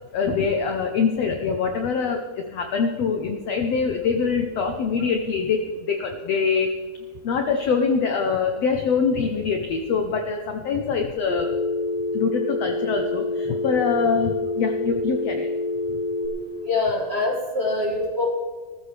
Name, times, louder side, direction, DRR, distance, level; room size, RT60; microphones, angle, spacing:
voice 1, 0.1-6.7 7.2-11.5 12.1-15.5 15.9-16.0, left 5 dB, 75° left, 4 dB, 1.5 m, -24 dB
Telephone, 11.3-16.3, left 2 dB, 75° right, 4.1 m, -27 dB
voice 2, 16.6-18.3, left 2 dB, 20° right, -3 dB, 1.8 m, -24 dB
19.5 x 14.0 x 3.4 m, 1.5 s
omnidirectional pair, 4.2 m